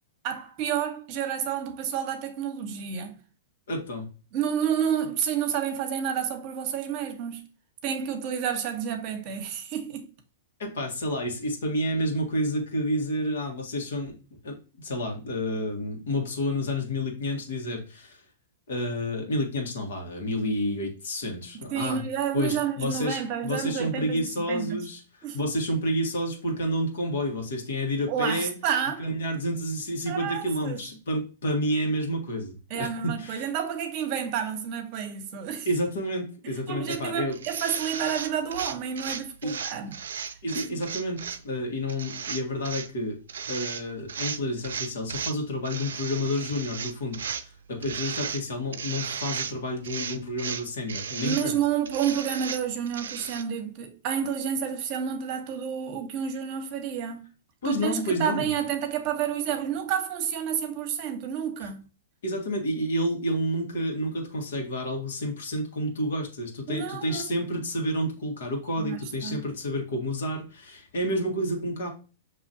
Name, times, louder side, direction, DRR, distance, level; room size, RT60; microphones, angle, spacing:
voice 1, 0.2-3.2 4.3-7.5 7.8-10.1 21.7-24.8 25.2-25.5 28.1-29.1 30.1-30.8 32.7-35.7 36.7-40.2 40.5-40.8 51.2-57.3 57.6-61.8 66.7-67.3 68.8-69.5, right 8 dB, 45° right, 0.9 m, -30 dB
voice 2, 3.7-4.1 10.6-14.1 14.4-18.2 18.7-22.0 22.3-28.5 29.0-33.4 35.6-37.4 39.4-39.6 40.4-41.2 41.4-43.2 43.5-51.5 57.6-58.5 61.6-61.7 62.2-71.9, equal, 75° left, 1.6 m, -30 dB
sound 1, 36.9-37.0 37.3-41.4 41.9-42.9 43.3-43.8 44.1-45.4 45.6-47.4 47.8-48.4 48.7-49.6 49.8-51.5 51.9-53.4, right 7 dB, 75° right, 0.4 m, -35 dB
6.1 x 3.0 x 2.7 m
hypercardioid pair, 115°, 0 cm